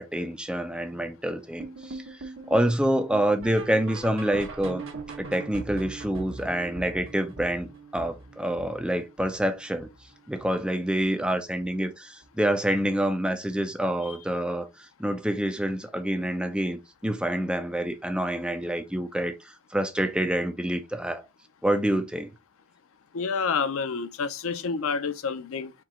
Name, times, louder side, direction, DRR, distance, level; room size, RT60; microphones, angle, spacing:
voice 1, 0.0-4.8 5.2-7.7 7.9-9.9 10.3-21.2 21.6-22.3, right 1 dB, 5° right, 0.5 m, -27 dB
sound 1, 1.6-10.7 11.0-11.3 11.6-11.7 12.2-12.3 12.8-12.9, right 3 dB, 60° right, 0.9 m, -41 dB
voice 2, 23.1-25.7, left 5 dB, 65° left, 0.5 m, -28 dB
4.5 x 2.9 x 3.6 m
head